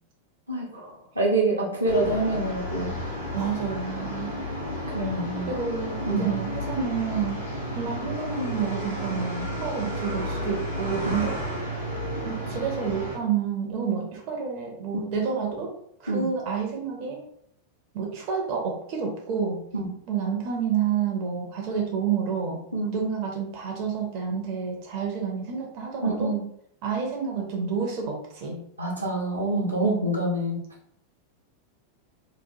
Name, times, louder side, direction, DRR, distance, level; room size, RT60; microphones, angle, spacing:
voice 1, 0.5-2.9 4.9-5.5 6.0-6.2 14.9-15.1 16.1-16.3 19.7-19.9 22.7-22.9 26.0-26.4 28.8-30.6, right 2 dB, 85° right, -3 dB, 0.7 m, -26 dB
sound 1, 1.8-13.2, equal, 85° left, 0.9 m, -32 dB
voice 2, 3.3-4.4 5.5-7.4 7.7-11.4 12.2-15.7 16.0-17.2 17.9-19.6 20.1-22.6 22.9-26.3 26.8-28.6 29.8-30.1, right 6 dB, 45° right, 0 dB, 0.6 m, -29 dB
2.9 x 2.2 x 2.6 m, 0.70 s
figure-of-eight pair, 90°, 0 cm